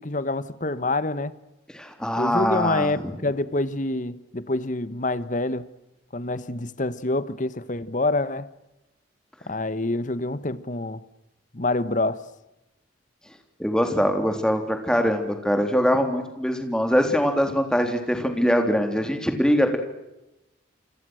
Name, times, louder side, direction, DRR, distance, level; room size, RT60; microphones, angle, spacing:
voice 1, 0.0-1.3 2.2-5.7 6.1-8.5 9.5-11.0 11.5-12.3, left 2 dB, 40° left, 1.2 m, -26 dB
voice 2, 1.7-3.1 13.6-19.8, equal, 5° left, 3.5 m, -23 dB
28.5 x 25.5 x 6.4 m
head